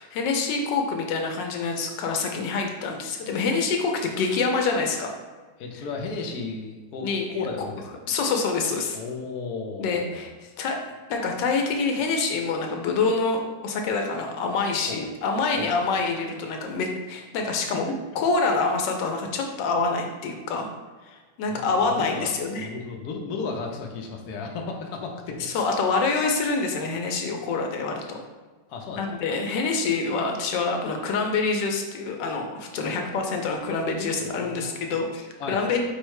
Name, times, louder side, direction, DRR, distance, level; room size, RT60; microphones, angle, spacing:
voice 1, 0.0-5.1 7.0-7.3 8.1-9.0 9.8-10.8 11.1-17.8 18.2-20.7 21.0-22.7 25.4-28.2 29.0-35.8, left 4 dB, 85° left, 3 dB, 1.3 m, -26 dB
voice 2, 5.6-7.9 8.9-10.3 14.9-15.0 15.6-15.8 16.6-16.7 17.9-18.0 21.5-25.7 28.7-29.1 34.4-34.9 35.4-35.6, left 4 dB, 70° left, 1 dB, 1.1 m, -34 dB
4.7 x 2.1 x 4.7 m, 1.3 s
omnidirectional pair, 1.9 m